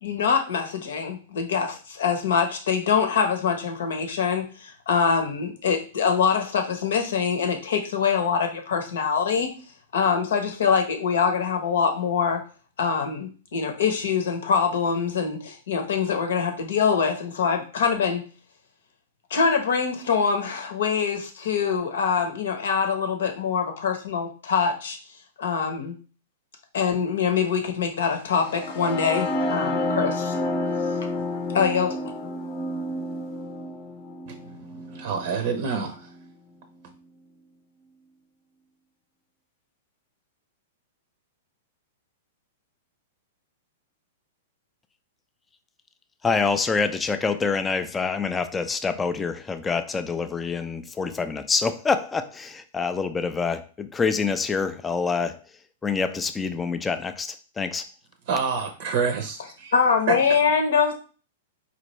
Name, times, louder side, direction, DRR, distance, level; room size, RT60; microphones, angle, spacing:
voice 1, 0.0-9.5 9.9-12.4 12.8-18.2 19.3-25.0 25.4-25.9 26.7-30.3 31.5-32.0 59.7-60.9, left 6 dB, 75° left, 0.9 m, -24 dB
sound 1, 28.3-36.2, left 2 dB, 40° left, 0.7 m, -30 dB
voice 2, 34.3-36.1 58.3-59.7 60.1-60.2, right 5 dB, 60° right, 0.6 m, -28 dB
voice 3, 46.2-55.4 55.8-57.8, left 5 dB, 15° left, 0.4 m, -26 dB
4.3 x 2.5 x 3.1 m
hypercardioid pair, 120°, 0 cm